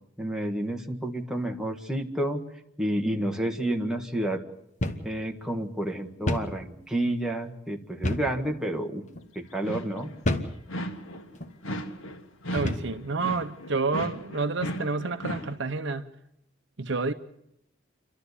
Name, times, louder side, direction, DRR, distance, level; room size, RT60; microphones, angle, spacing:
voice 1, 0.2-2.4 2.8-4.4 5.0-9.0 9.3-10.1, right 1 dB, 5° right, 1.6 m, -30 dB
sound 1, 4.8-5.1 5.4-5.5 6.3-6.6 8.0-8.4 9.1-9.3 10.2-10.6 11.3-11.5 12.6-13.0, left 1 dB, 35° left, 1.3 m, -29 dB
sound 2, 9.5-10.2 10.7-11.3 11.6-15.6, equal, 85° left, 1.7 m, -36 dB
voice 2, 12.5-16.1 16.8-17.1, right 4 dB, 60° right, 0.9 m, -29 dB
29.0 x 12.5 x 8.3 m
head